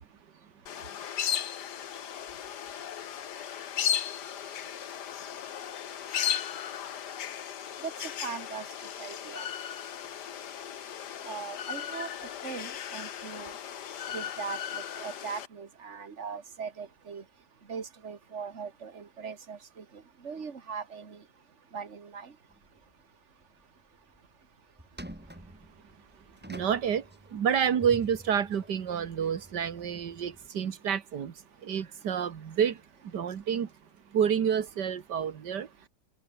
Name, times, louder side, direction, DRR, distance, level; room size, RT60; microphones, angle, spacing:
sound 1, 0.7-15.5, left 9 dB, 80° left, 1.8 m, -36 dB
voice 1, 8.2-8.7 9.0-9.5 11.2-12.1 12.4-13.5 14.1-17.2 17.7-21.2 21.7-22.3, right 6 dB, 45° right, 2.3 m, -40 dB
sound 2, 22.5-23.0 23.4-23.5 24.0-24.3 24.8-30.5, right 1 dB, 5° right, 2.7 m, -48 dB
voice 2, 26.5-27.0 27.3-31.3 31.6-32.8 33.1-33.7 34.1-35.7, right 8 dB, 85° right, 2.1 m, -28 dB
omnidirectional pair, 1.8 m